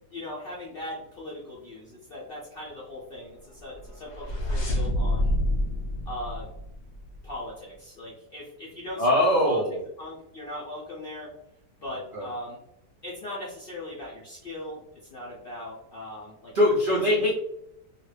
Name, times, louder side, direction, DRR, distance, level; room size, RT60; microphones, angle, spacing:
voice 1, 0.1-5.3 6.1-6.5 7.2-9.1 9.4-9.6 10.0-11.3 11.8-12.6 13.0-14.8 15.1-16.5 16.9-17.3, left 1 dB, 65° left, -5 dB, 0.5 m, -39 dB
sound 1, 3.7-7.3, left 1 dB, 45° left, 0.9 m, -28 dB
voice 2, 9.0-9.8 11.9-12.3 16.5-17.3, left 1 dB, 85° right, -4 dB, 0.4 m, -22 dB
2.9 x 2.4 x 3.2 m, 0.78 s
omnidirectional pair, 1.8 m